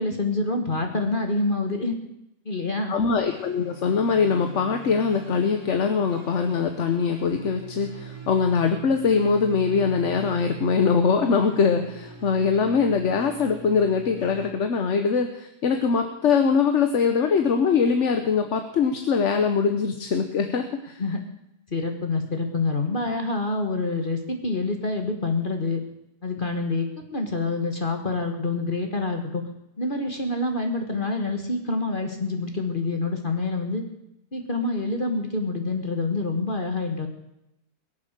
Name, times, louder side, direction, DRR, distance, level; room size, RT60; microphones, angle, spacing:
voice 1, 0.0-1.9 2.4-3.0 21.0-21.2 21.7-25.8 26.2-29.4 29.8-33.8 34.3-37.1, left 3 dB, 35° left, 4 dB, 1.6 m, -27 dB
voice 2, 2.9-21.0, left 5 dB, 50° left, 6 dB, 1.2 m, -22 dB
sound 1, 3.3-14.5, right 5 dB, 55° right, 3.2 m, -43 dB
22.0 x 7.5 x 6.7 m, 0.84 s
omnidirectional pair, 1.7 m